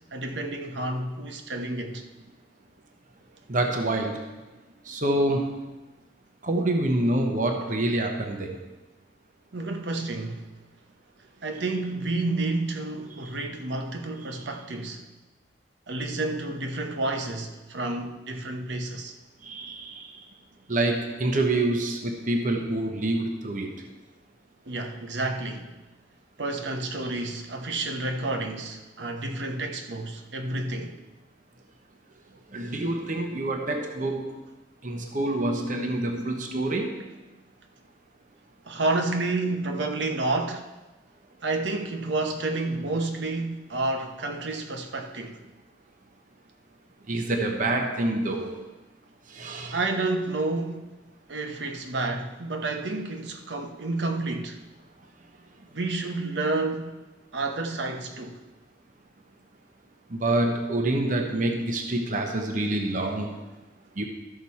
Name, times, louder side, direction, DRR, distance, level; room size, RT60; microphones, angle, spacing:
voice 1, 0.1-2.0 9.5-10.4 11.4-15.0 15.9-19.1 24.7-25.7 26.4-31.0 38.7-40.7 41.4-45.4 49.7-50.9 51.3-54.6 55.7-57.0 57.3-58.4, right 2 dB, 75° right, 0.9 m, -30 dB
voice 2, 3.5-4.2 4.9-5.6 6.4-8.5 19.4-20.1 20.7-23.7 32.5-34.4 34.8-37.0 47.1-48.6 49.3-49.8 60.1-63.3 64.0-64.1, right 1 dB, 45° right, 0.9 m, -26 dB
13.0 x 6.1 x 4.2 m
head